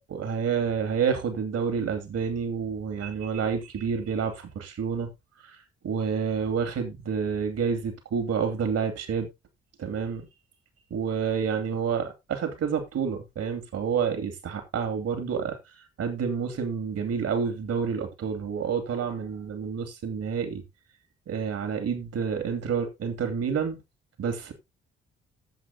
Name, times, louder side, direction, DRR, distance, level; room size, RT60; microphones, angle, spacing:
voice 1, 0.0-5.1 5.4-5.6 5.8-9.3 9.8-10.3 10.9-15.6 16.0-20.6 21.3-23.8 24.2-24.5, right 6 dB, 50° right, 2.8 m, -29 dB
13.5 x 7.8 x 2.9 m
figure-of-eight pair, 45°, 31 cm